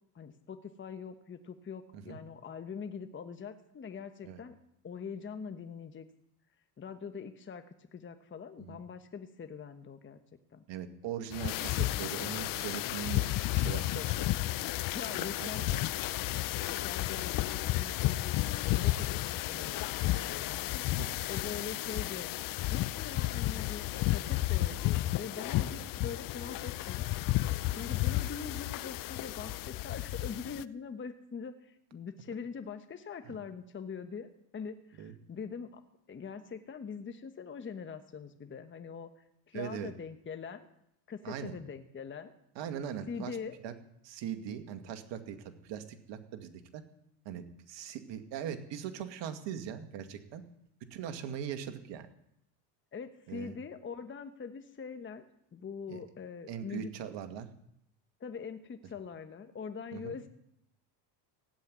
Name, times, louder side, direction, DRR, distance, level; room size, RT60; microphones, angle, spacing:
voice 1, 0.1-4.6 4.8-6.1 6.8-10.2 10.5-10.6 13.9-14.0 14.9-15.7 16.7-20.9 21.3-22.3 22.7-27.2 27.7-35.8 36.1-40.7 41.1-42.3 43.1-43.6 52.9-55.2 55.5-56.9 58.2-60.3, left 6 dB, 25° left, 8 dB, 1.2 m, -43 dB
voice 2, 10.7-14.0 15.1-15.8 21.0-21.1 25.7-25.9 33.2-33.4 35.0-35.1 39.5-39.9 41.2-41.6 42.6-43.4 43.6-43.7 44.0-46.8 47.3-50.4 50.9-52.1 53.3-53.6 55.9-56.0 56.5-57.5 59.9-60.2, right 9 dB, 60° right, 7 dB, 2.2 m, -40 dB
sound 1, 11.3-30.6, left 16 dB, 45° left, 0.6 m, -32 dB
16.5 x 8.0 x 9.5 m, 0.76 s
supercardioid pair, 95°, 49 cm